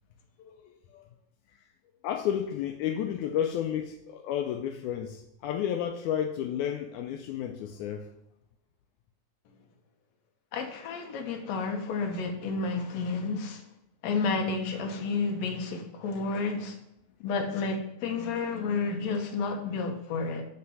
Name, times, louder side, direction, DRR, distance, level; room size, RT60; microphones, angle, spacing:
voice 1, 0.4-1.0 1.5-1.7 2.0-8.1, left 9 dB, 85° left, 2.0 m, -32 dB
voice 2, 10.5-13.6 14.0-16.8 17.2-20.4, left 4 dB, 70° left, 2.2 m, -31 dB
8.6 x 4.3 x 5.4 m
omnidirectional pair, 3.4 m